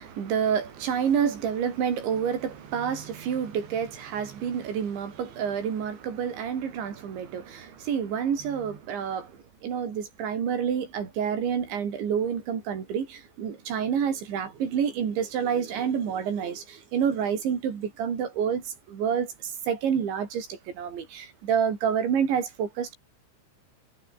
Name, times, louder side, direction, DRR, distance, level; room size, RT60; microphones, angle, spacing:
voice 1, 0.0-9.3 9.6-18.6 18.9-23.0, right 7 dB, 60° right, 6.2 m, -28 dB
omnidirectional pair, 5.9 m